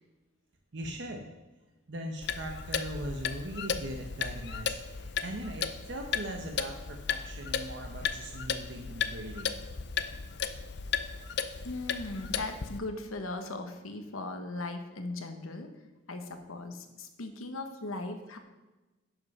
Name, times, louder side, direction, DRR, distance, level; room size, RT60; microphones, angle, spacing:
voice 1, 0.7-1.3 1.9-9.6 17.9-18.0, right 1 dB, 60° right, 3 dB, 0.8 m, -40 dB
Clock, 2.2-12.8, left 6 dB, 55° left, 0.5 m, -35 dB
voice 2, 11.6-15.7 16.1-18.4, left 2 dB, 85° left, 6 dB, 1.1 m, -38 dB
11.5 x 5.4 x 5.4 m, 1.1 s
head